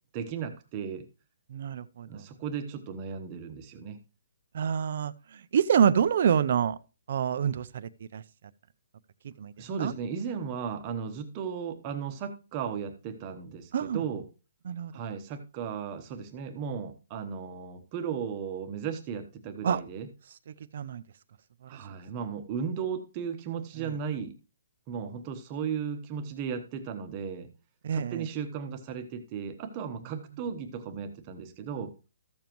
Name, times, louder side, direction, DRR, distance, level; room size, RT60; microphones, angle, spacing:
voice 1, 0.1-1.0 2.1-4.0 9.6-14.2 14.9-20.1 21.7-24.3 24.9-27.5 27.9-31.9, right 7 dB, 20° right, 0.9 m, -35 dB
voice 2, 1.5-2.3 4.5-6.8 7.1-8.2 9.2-9.5 9.8-9.9 13.7-14.0 14.6-14.9 19.6-19.8 20.5-21.0 21.6-21.8 23.8-23.9 27.8-28.3 30.0-30.2, right 8 dB, 45° right, 0.5 m, -27 dB
14.0 x 7.1 x 3.0 m
hypercardioid pair, 175°, 0 cm